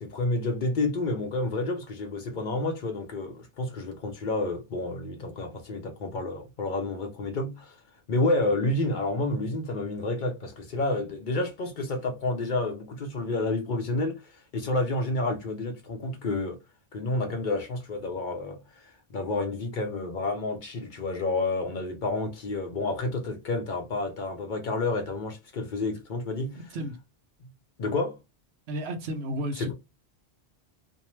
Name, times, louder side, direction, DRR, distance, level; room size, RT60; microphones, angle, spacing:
voice 1, 0.0-7.7 8.1-14.2 14.5-16.6 16.9-26.6 27.8-28.2 29.6-29.7, left 2 dB, 55° left, 0.7 m, -29 dB
voice 2, 28.7-29.7, right 1 dB, 85° right, 0.9 m, -32 dB
2.6 x 2.1 x 3.0 m
omnidirectional pair, 1.1 m